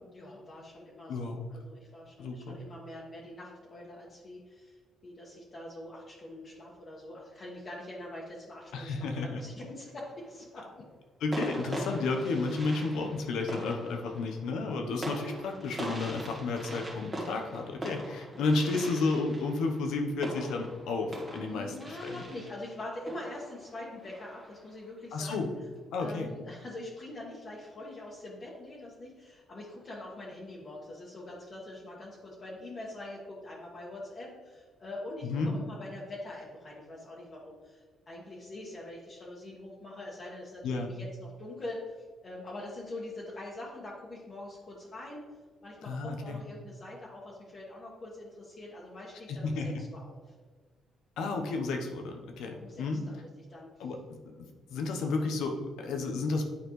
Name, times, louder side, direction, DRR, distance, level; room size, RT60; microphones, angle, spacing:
voice 1, 0.1-4.8 5.0-10.8 14.8-15.0 21.4-25.5 26.0-42.0 42.2-45.3 45.6-50.3 52.4-53.2 53.5-53.9, left 1 dB, 45° left, -6 dB, 1.5 m, -44 dB
voice 2, 1.1-1.5 2.2-2.6 8.7-9.4 11.2-22.2 25.1-25.5 25.9-26.3 35.2-35.5 40.6-40.9 45.9-46.4 49.3-49.8 51.2-53.0 53.8-54.0 54.4-56.4, left 3 dB, 85° left, 3 dB, 0.9 m, -32 dB
sound 1, 9.8-10.4 11.3-24.7, right 1 dB, 20° right, 1.6 m, -42 dB
9.5 x 4.3 x 3.2 m, 1.4 s
cardioid pair, 90°, 0 cm